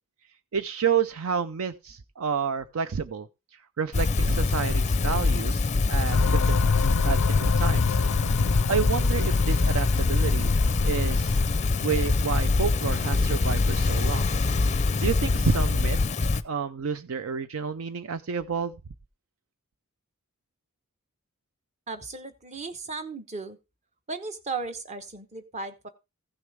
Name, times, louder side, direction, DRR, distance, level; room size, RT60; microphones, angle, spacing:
voice 1, 0.5-3.3 3.8-5.6 5.9-6.6 7.0-8.0 8.7-11.4 11.8-14.3 15.0-16.0 16.4-18.7, right 6 dB, 65° right, 0.5 m, -29 dB
sound 1, 3.9-16.4, left 3 dB, 30° left, 0.5 m, -24 dB
sound 2, 6.1-12.4, left 6 dB, 85° left, 0.4 m, -29 dB
voice 2, 21.9-23.6 24.1-25.9, right 4 dB, 30° right, 1.0 m, -36 dB
15.5 x 6.4 x 3.4 m
head